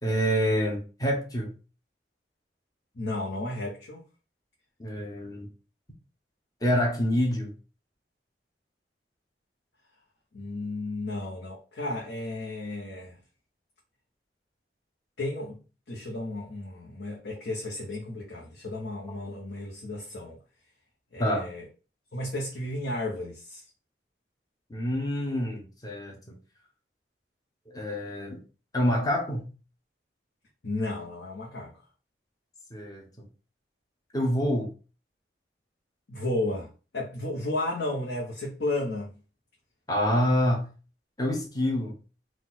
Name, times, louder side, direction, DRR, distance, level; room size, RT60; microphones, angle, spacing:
voice 1, 0.0-1.5 4.8-5.5 6.6-7.5 19.3-19.4 21.2-21.5 24.7-26.4 27.7-28.4 28.7-29.5 32.7-33.1 34.1-34.7 39.9-40.7 41.2-41.9, equal, 20° left, 0.9 m, -27 dB
voice 2, 3.0-4.0 10.3-13.2 15.2-15.6 15.9-20.4 21.1-21.6 22.1-23.7 30.6-31.7 36.1-39.1, left 2 dB, 75° left, 1.0 m, -33 dB
4.1 x 2.4 x 4.2 m
head